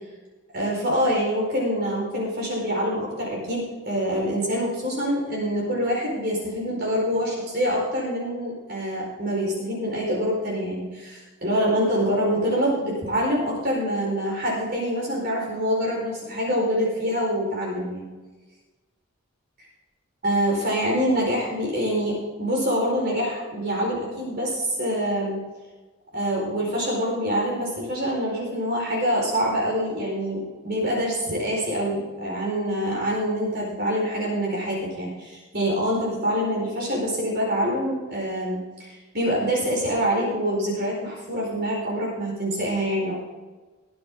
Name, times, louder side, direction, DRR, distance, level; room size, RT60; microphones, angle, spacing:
voice 1, 0.5-18.1 20.2-25.4 26.1-43.1, equal, 50° right, -4 dB, 4.7 m, -25 dB
21.5 x 8.5 x 3.8 m, 1.3 s
head